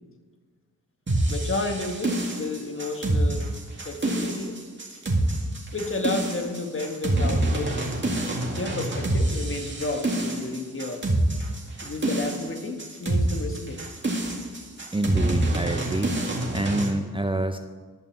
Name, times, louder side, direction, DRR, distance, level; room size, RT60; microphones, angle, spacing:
sound 1, 1.1-16.9, right 1 dB, 35° right, 2.0 m, -26 dB
voice 1, 1.3-3.5 3.8-4.6 5.7-7.9 8.5-11.1 11.8-13.8 14.3-14.4, left 2 dB, 35° left, 5 dB, 1.5 m, -32 dB
voice 2, 14.9-16.2 16.5-17.6, right 2 dB, 15° right, 7 dB, 0.5 m, -27 dB
11.5 x 5.5 x 7.3 m, 1.5 s
cardioid pair, 55°, 34 cm